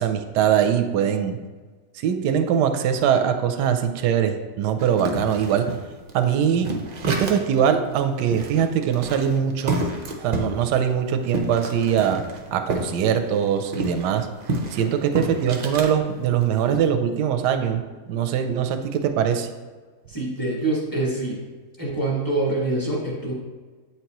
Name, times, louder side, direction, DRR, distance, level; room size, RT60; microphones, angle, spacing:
voice 1, 0.0-1.4 1.9-5.8 6.1-6.8 7.1-9.8 10.2-12.2 12.5-14.3 14.7-17.8 18.1-19.5, right 8 dB, 85° right, 7 dB, 1.2 m, -22 dB
sound 1, 4.8-7.6 7.9-8.0 8.3-12.9 13.2-15.9 16.4-16.8, right 2 dB, 60° right, 0.4 m, -30 dB
voice 2, 20.1-21.4 21.8-23.3, right 2 dB, 15° left, -4 dB, 1.3 m, -25 dB
8.2 x 4.6 x 3.0 m, 1.4 s
omnidirectional pair, 1.7 m